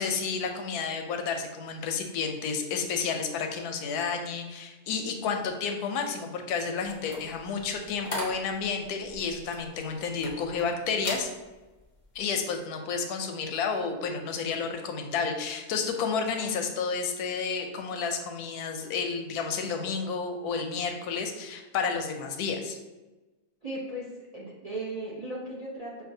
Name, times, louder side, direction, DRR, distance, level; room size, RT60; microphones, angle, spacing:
voice 1, 0.0-11.3 12.1-22.8, left 5 dB, 85° left, 5 dB, 1.1 m, -31 dB
sound 1, 6.8-10.7 11.0-11.3 11.8-12.0, left 1 dB, 40° left, 0.4 m, -38 dB
voice 2, 23.6-24.1 24.3-26.0, right 1 dB, 55° right, -5 dB, 0.4 m, -36 dB
5.8 x 2.4 x 2.6 m, 1.1 s
omnidirectional pair, 1.6 m